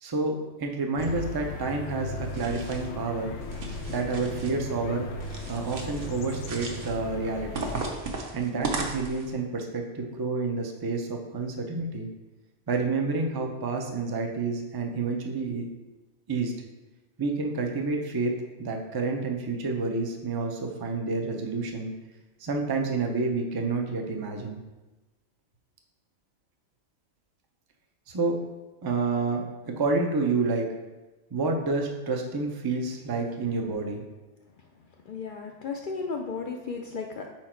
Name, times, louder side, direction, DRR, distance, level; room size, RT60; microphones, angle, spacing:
voice 1, 0.0-3.3 3.9-5.1 5.5-7.7 8.3-12.1 12.7-15.6 16.3-16.5 17.2-21.9 22.4-24.6 28.1-28.4 28.8-30.7 31.3-34.0, right 3 dB, 30° right, 2 dB, 0.4 m, -29 dB
sound 1, 1.0-7.8, left 2 dB, 85° left, 1.0 m, -37 dB
sound 2, 2.2-2.9 3.4-4.5 5.2-6.1 6.4-7.0 7.5-9.3, right 3 dB, 55° right, 0.9 m, -36 dB
voice 2, 35.1-37.3, left 4 dB, 60° left, 2 dB, 0.5 m, -34 dB
4.9 x 4.4 x 4.4 m, 1.1 s
omnidirectional pair, 1.3 m